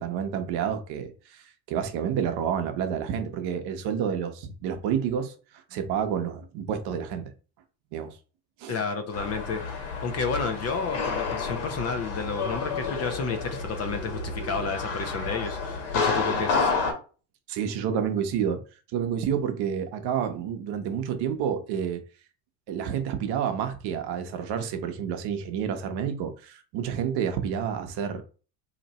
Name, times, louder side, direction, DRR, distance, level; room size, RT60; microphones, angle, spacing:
voice 1, 0.0-5.3 5.7-7.3 7.9-8.2 8.6-8.8 17.5-18.6 18.9-22.0 22.7-28.2, right 8 dB, 55° right, 0.9 m, -29 dB
voice 2, 8.7-9.6 10.0-16.7, left 4 dB, 30° left, 0.7 m, -31 dB
sound 1, 9.1-16.9, left 4 dB, 70° left, 1.4 m, -30 dB
2.9 x 2.6 x 4.1 m
supercardioid pair, 95°, 48 cm